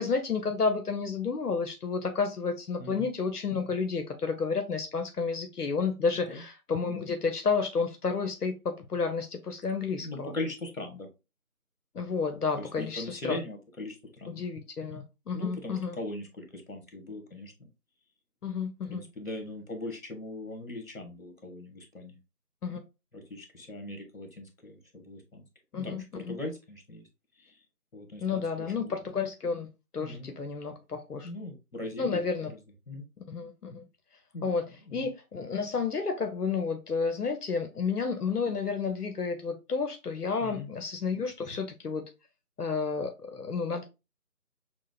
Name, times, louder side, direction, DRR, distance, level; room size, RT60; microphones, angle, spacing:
voice 1, 0.0-10.3 11.9-13.4 14.3-16.0 18.4-19.0 22.6-22.8 25.7-26.4 28.2-29.7 29.9-31.3 32.0-32.5 33.3-33.8 34.4-34.6 34.9-42.1 42.6-43.8, left 5 dB, 85° left, 0.8 m, -31 dB
voice 2, 10.0-11.1 12.6-14.5 15.3-17.7 18.9-22.2 23.1-25.4 25.8-27.1 27.4-27.5 27.9-29.0 30.0-30.3 31.2-32.6 32.9-33.1 34.3-34.5 34.8-35.1 40.4-40.7, left 2 dB, 60° left, 1.4 m, -40 dB
6.1 x 2.1 x 2.4 m
figure-of-eight pair, 175°, 45 cm